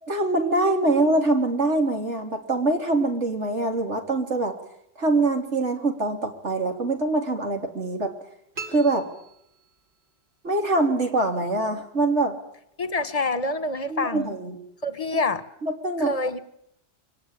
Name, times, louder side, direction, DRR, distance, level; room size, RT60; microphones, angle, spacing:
voice 1, 0.0-4.6 5.0-8.1 8.7-9.1 10.4-12.4 13.9-14.6 15.1-15.2 15.6-16.1, right 2 dB, 70° right, 4 dB, 3.6 m, -24 dB
sound 1, 8.5-10.1, right 4 dB, 45° right, 2.7 m, -41 dB
voice 2, 12.8-14.3 14.8-15.4 16.0-16.4, left 2 dB, 30° left, 11 dB, 1.6 m, -26 dB
24.5 x 18.5 x 8.9 m, 0.75 s
omnidirectional pair, 1.2 m